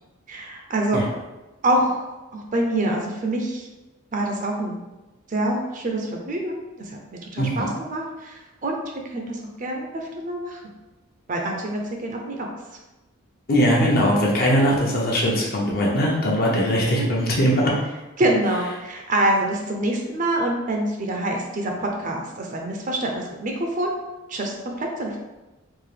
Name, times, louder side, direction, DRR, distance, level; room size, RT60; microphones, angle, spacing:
voice 1, 0.3-1.0 1.6-3.7 4.1-4.7 5.3-7.0 7.3-8.8 9.0-10.6 11.3-12.5 17.0-17.1 18.2-23.9 24.3-25.2, right 1 dB, 40° right, 1 dB, 0.5 m, -26 dB
voice 2, 7.4-7.7 13.5-17.7, equal, 45° left, -3 dB, 0.8 m, -20 dB
3.7 x 2.5 x 3.3 m, 1.1 s
head